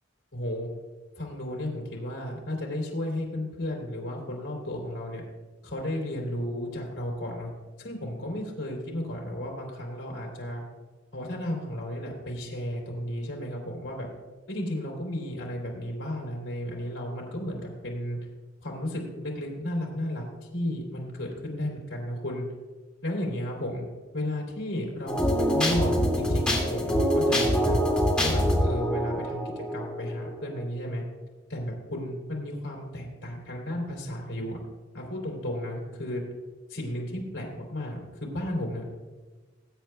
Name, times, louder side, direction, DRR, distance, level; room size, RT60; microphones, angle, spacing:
voice 1, 0.3-0.7 1.2-5.2 5.6-7.5 7.8-10.6 11.1-14.1 14.5-18.2 18.6-20.2 20.5-22.5 23.0-23.8 24.1-27.8 28.2-31.0 31.5-34.6 34.9-36.2 36.7-38.9, left 1 dB, 65° left, -3 dB, 3.3 m, -33 dB
sound 1, 25.1-30.6, equal, 5° left, 2.2 m, -25 dB
21.0 x 8.9 x 2.3 m, 1.3 s
head